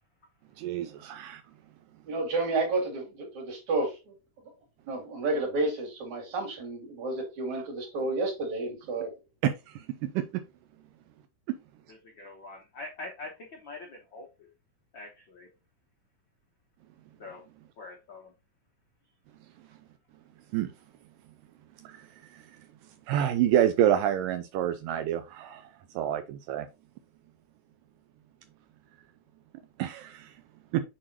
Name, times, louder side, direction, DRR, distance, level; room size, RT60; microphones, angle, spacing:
voice 1, 0.6-1.4 9.4-9.8 10.2-10.3 20.5-20.7 21.8-22.1 22.3-22.4 23.1-25.6 26.0-26.7 29.8-30.3 30.7-30.8, right 11 dB, 80° right, 9 dB, 2.1 m, -27 dB
voice 2, 2.1-4.0 4.9-9.1, right 2 dB, 55° right, 0 dB, 3.4 m, -30 dB
voice 3, 11.9-14.5 14.9-15.5 17.2-17.4 17.8-18.3, left 2 dB, 85° left, 1 dB, 1.0 m, -44 dB
7.5 x 4.4 x 2.9 m, 0.26 s
omnidirectional pair, 4.1 m